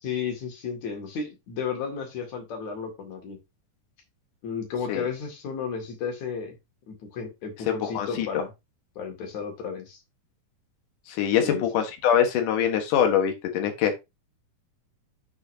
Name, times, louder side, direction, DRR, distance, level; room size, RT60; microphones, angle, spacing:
voice 1, 0.0-3.4 4.4-6.6 6.9-8.5 9.0-10.0 11.4-11.6, left 6 dB, 65° left, 3 dB, 3.4 m, -33 dB
voice 2, 7.7-8.3 11.1-14.0, left 8 dB, 80° left, 5 dB, 2.9 m, -24 dB
8.2 x 6.7 x 2.7 m, 0.23 s
omnidirectional pair, 3.6 m